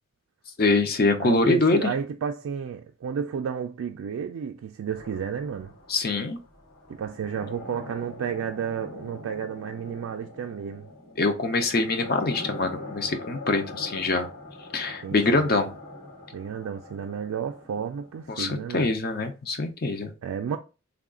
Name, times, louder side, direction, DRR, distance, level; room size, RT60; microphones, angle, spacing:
voice 1, 0.6-1.9 5.9-6.4 11.2-14.3 14.7-15.7 18.3-20.1, left 3 dB, 45° left, 0.6 m, -24 dB
voice 2, 1.2-5.8 6.9-10.9 15.0-15.5 16.3-18.9 20.2-20.6, right 7 dB, 85° right, 0.3 m, -32 dB
sound 1, 4.9-18.8, left 2 dB, 85° left, 1.9 m, -43 dB
3.5 x 2.4 x 3.6 m
head